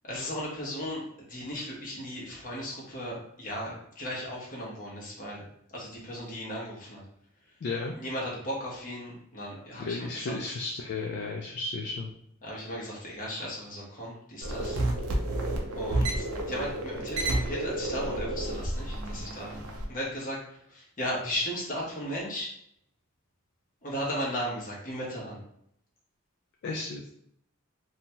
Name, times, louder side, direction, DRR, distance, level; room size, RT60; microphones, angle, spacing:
voice 1, 0.0-7.0 7.9-10.3 12.4-14.8 15.7-22.5 23.8-25.4, equal, 40° left, -4 dB, 1.0 m, -36 dB
voice 2, 7.6-7.9 9.8-12.1 26.6-27.0, left 3 dB, 55° left, 1 dB, 0.3 m, -33 dB
sound 1, 14.4-19.8, right 1 dB, 75° right, 0.5 m, -31 dB
2.8 x 2.2 x 2.8 m, 0.72 s
head